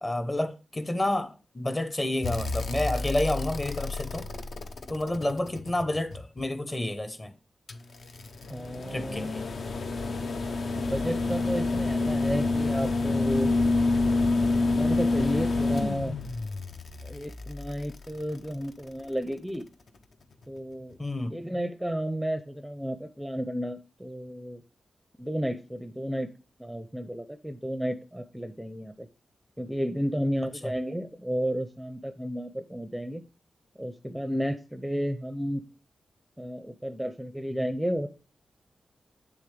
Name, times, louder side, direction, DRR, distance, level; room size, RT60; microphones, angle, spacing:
voice 1, 0.0-4.2 4.9-7.3 8.9-9.4 21.0-21.4, left 1 dB, 25° left, 0.9 m, -29 dB
sound 1, 2.2-6.4 7.7-18.9 20.4-20.5, left 3 dB, 60° left, 0.7 m, -28 dB
voice 2, 8.5-9.3 10.7-13.5 14.7-16.1 17.0-19.6 20.5-21.0 21.3-24.6 25.2-26.3 26.6-29.1 29.6-33.2 33.8-35.6 36.4-38.1, equal, 5° right, 0.6 m, -32 dB
7.3 x 6.9 x 3.3 m
wide cardioid pair, 95°, 0 cm